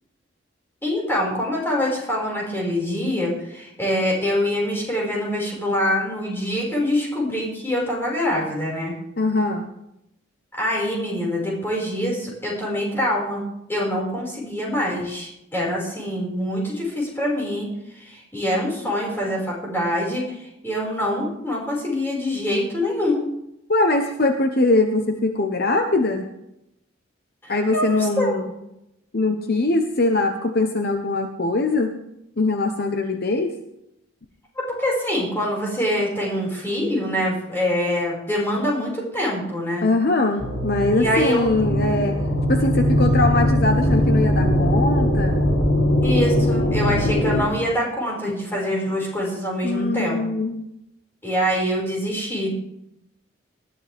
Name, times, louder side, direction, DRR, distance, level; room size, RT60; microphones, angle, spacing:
voice 1, 0.8-8.9 10.5-13.4 13.7-17.7 17.9-23.2 27.4-28.4 34.7-39.8 41.0-41.5 46.0-50.2 51.2-52.5, equal, 10° left, -3 dB, 5.5 m, -24 dB
voice 2, 9.2-9.7 23.7-26.3 27.5-28.5 29.1-31.9 32.4-33.5 39.8-42.2 42.5-45.4 49.6-50.6, left 2 dB, 50° left, 5 dB, 1.0 m, -22 dB
sound 1, 40.4-47.4, equal, 75° left, 3.4 m, -20 dB
19.5 x 12.5 x 3.5 m, 0.82 s
head